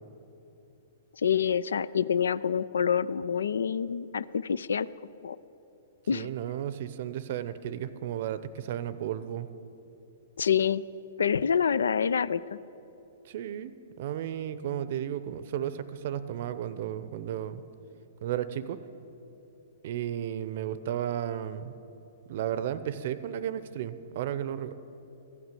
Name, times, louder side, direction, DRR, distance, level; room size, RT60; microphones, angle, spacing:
voice 1, 1.2-4.9 5.2-5.4 6.1-6.3 10.4-10.8 11.2-12.6, left 7 dB, 80° left, 18 dB, 0.3 m, -27 dB
voice 2, 6.1-9.5 13.2-13.7 14.0-17.6 18.2-18.8 19.8-21.7 22.3-24.7, right 10 dB, 55° right, 14 dB, 0.6 m, -33 dB
14.5 x 5.9 x 9.3 m, 2.9 s
hypercardioid pair, 120°, 0 cm